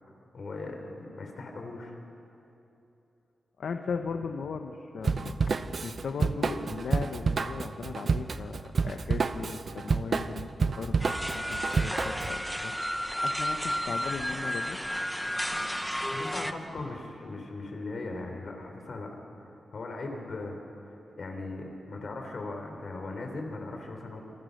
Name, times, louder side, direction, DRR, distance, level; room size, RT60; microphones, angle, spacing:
voice 1, 0.3-2.0 16.1-19.1 19.5-20.6 20.9-24.2, left 2 dB, 50° left, 3 dB, 4.0 m, -39 dB
voice 2, 3.6-14.8 15.5-15.6 16.8-16.9, left 5 dB, 70° left, 5 dB, 1.1 m, -38 dB
Drum kit / Drum, 5.0-12.4, right 5 dB, 45° right, 0.7 m, -29 dB
sound 1, 11.0-16.5, equal, ahead, 0.9 m, -32 dB
28.0 x 26.5 x 6.7 m, 2.9 s
wide cardioid pair, 170°, 0 cm